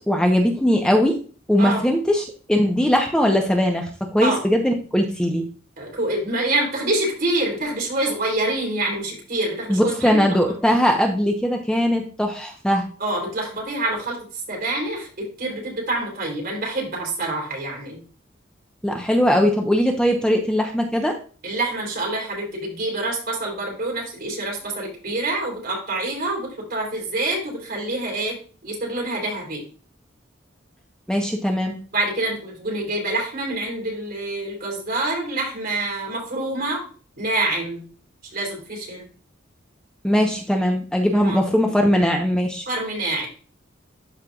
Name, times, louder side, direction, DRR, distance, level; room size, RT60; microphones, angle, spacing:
voice 1, 0.1-1.2 1.5-5.4 9.7-12.9 18.8-21.1 31.1-31.8 40.0-42.6, equal, 5° left, 2 dB, 0.8 m, -20 dB
voice 2, 5.8-10.4 13.0-14.2 14.5-18.0 21.4-29.6 31.9-36.8 37.2-37.8 38.3-39.1 41.1-41.4 42.7-43.3, right 2 dB, 50° right, -2 dB, 3.3 m, -26 dB
12.5 x 4.5 x 2.4 m, 0.39 s
head